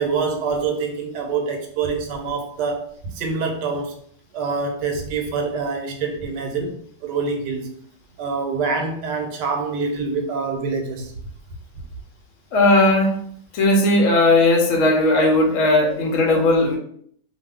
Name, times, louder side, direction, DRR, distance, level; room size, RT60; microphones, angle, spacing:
voice 1, 0.0-2.9 3.1-3.9 4.3-6.7 7.0-7.7 8.2-11.1, right 4 dB, 85° right, 3 dB, 1.2 m, -25 dB
voice 2, 12.5-13.2 13.5-16.8, left 2 dB, 60° left, 1 dB, 0.8 m, -17 dB
2.5 x 2.5 x 3.3 m, 0.63 s
omnidirectional pair, 1.8 m